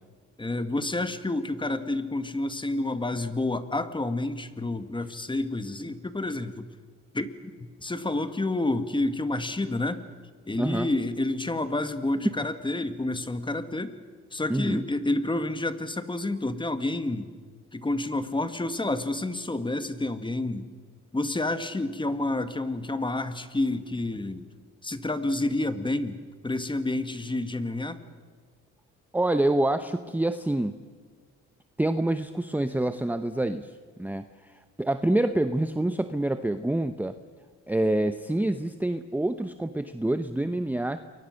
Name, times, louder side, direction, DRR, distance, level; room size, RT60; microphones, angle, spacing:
voice 1, 0.4-6.7 7.1-7.3 7.8-10.0 10.5-14.0 14.3-17.3 17.7-20.7 21.1-24.5 24.8-28.0, left 2 dB, 15° left, 10 dB, 1.8 m, -29 dB
voice 2, 10.6-10.9 14.5-14.8 29.1-30.7 31.8-33.7 34.0-34.5 34.8-37.1 37.7-41.0, right 1 dB, 5° right, 9 dB, 0.9 m, -26 dB
28.5 x 23.0 x 6.5 m, 1.5 s
cardioid pair, 90°, 30 cm